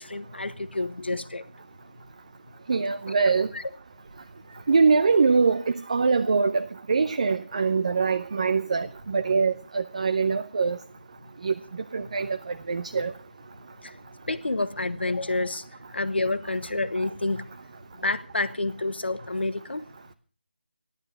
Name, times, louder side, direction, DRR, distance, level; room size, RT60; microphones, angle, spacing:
voice 1, 0.0-1.4 3.1-3.6 13.8-14.0 14.2-17.5 17.9-19.8, left 2 dB, 75° left, 1.3 m, -29 dB
voice 2, 2.7-3.5 4.7-5.6 5.9-10.8 11.4-11.5 11.9-13.1, right 4 dB, 35° right, 0.6 m, -23 dB
14.5 x 11.5 x 6.3 m
figure-of-eight pair, 165°, 6 cm